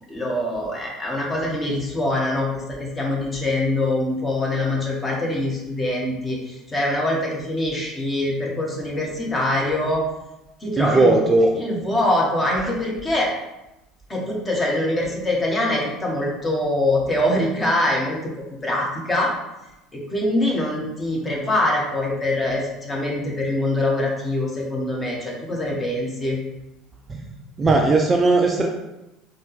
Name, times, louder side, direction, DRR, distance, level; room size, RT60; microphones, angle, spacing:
voice 1, 0.1-10.0 10.6-11.2 11.5-13.3 14.1-18.2 18.6-19.3 19.9-26.4, left 1 dB, 20° left, -3 dB, 1.2 m, -24 dB
voice 2, 10.8-11.5 27.1-27.2 27.6-28.7, right 2 dB, 25° right, 2 dB, 0.4 m, -17 dB
4.1 x 2.6 x 3.4 m, 0.95 s
figure-of-eight pair, 65°, 0 cm